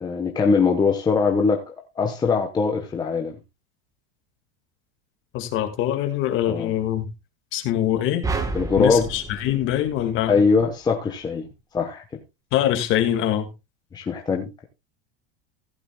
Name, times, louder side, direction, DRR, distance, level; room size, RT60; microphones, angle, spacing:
voice 1, 0.0-3.4 6.5-6.8 8.5-9.1 10.3-11.5 11.7-12.0 13.9-14.6, left 5 dB, 15° left, 1.0 m, -22 dB
voice 2, 5.3-7.1 7.5-8.3 8.8-10.4 12.5-13.5, left 11 dB, 40° left, 1.9 m, -23 dB
sound 1, 8.2-10.6, right 4 dB, 10° right, 1.2 m, -31 dB
15.5 x 11.0 x 2.2 m
supercardioid pair, 165°, 32 cm